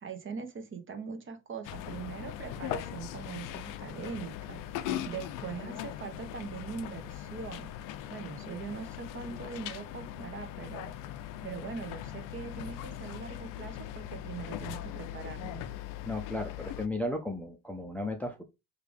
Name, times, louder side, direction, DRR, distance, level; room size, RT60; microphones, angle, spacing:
voice 1, 0.0-7.7 8.1-10.9 11.4-15.6, right 5 dB, 35° right, 0.9 m, -42 dB
sound 1, 1.6-16.9, left 11 dB, 65° left, 0.5 m, -40 dB
voice 2, 16.0-18.4, left 1 dB, 5° left, 0.5 m, -35 dB
4.6 x 2.5 x 3.3 m
supercardioid pair, 85°, 35 cm